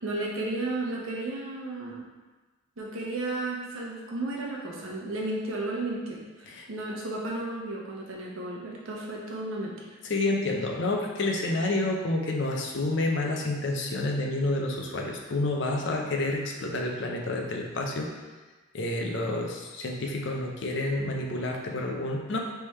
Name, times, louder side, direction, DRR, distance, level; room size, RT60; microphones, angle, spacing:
voice 1, 0.0-2.0 2.8-9.7, right 2 dB, 80° right, -3 dB, 0.9 m, -33 dB
voice 2, 10.1-18.1 18.7-22.4, left 2 dB, 60° left, 0 dB, 0.6 m, -29 dB
3.5 x 3.3 x 4.2 m, 1.2 s
head